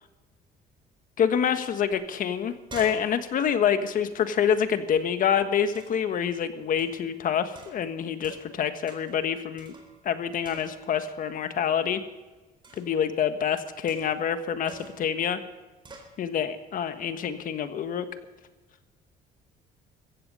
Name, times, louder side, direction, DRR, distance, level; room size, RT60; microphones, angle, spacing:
voice 1, 1.2-9.7 10.0-12.0 12.8-15.4 16.2-18.1, left 8 dB, 55° left, 9 dB, 1.4 m, -27 dB
sound 1, 1.9-2.0 2.3-5.0 5.7-6.1 6.8-7.1 7.5-8.6 8.9-9.2 9.6-10.2 10.4-11.0 12.6-13.0 13.9-14.3 14.7-15.1 15.8-16.1, right 3 dB, 30° right, 4.1 m, -48 dB
15.5 x 15.0 x 5.5 m, 1.2 s
cardioid pair, 110°, 17 cm